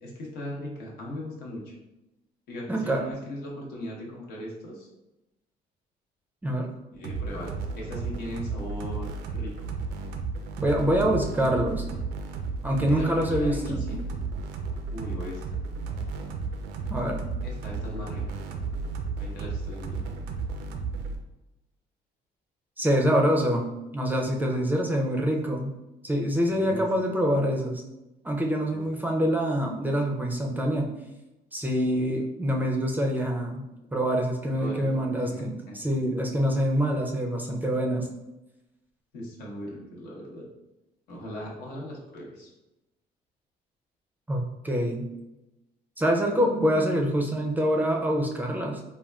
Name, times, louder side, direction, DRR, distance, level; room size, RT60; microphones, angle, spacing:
voice 1, 0.0-1.7 2.5-4.9 6.9-9.7 12.7-14.0 14.9-15.7 17.4-18.2 19.2-20.1 26.5-26.9 28.7-28.8 34.5-35.8 39.1-40.5 41.1-42.5, left 1 dB, 85° left, -3 dB, 0.9 m, -38 dB
voice 2, 2.7-3.1 6.4-6.7 10.6-11.8 12.6-13.8 16.9-17.3 22.8-23.6 23.9-25.7 26.0-27.8 28.2-30.9 31.5-38.1 44.3-45.1 46.0-48.8, equal, 10° right, 0 dB, 0.4 m, -25 dB
sound 1, 7.0-21.2, right 4 dB, 85° right, 0.4 m, -33 dB
3.5 x 2.3 x 2.2 m, 0.97 s
cardioid pair, 110°, 17 cm